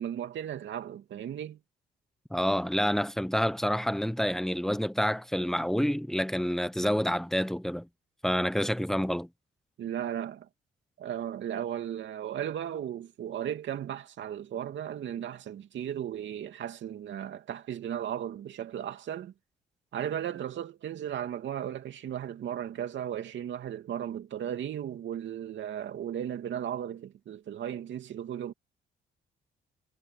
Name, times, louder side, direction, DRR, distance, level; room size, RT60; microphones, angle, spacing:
voice 1, 0.0-1.6 9.8-10.5 11.0-19.3 19.9-28.5, right 10 dB, 70° right, 2.8 m, -36 dB
voice 2, 2.3-7.9 8.2-9.3, equal, ahead, 1.1 m, -28 dB
cardioid pair, 90°, 20 cm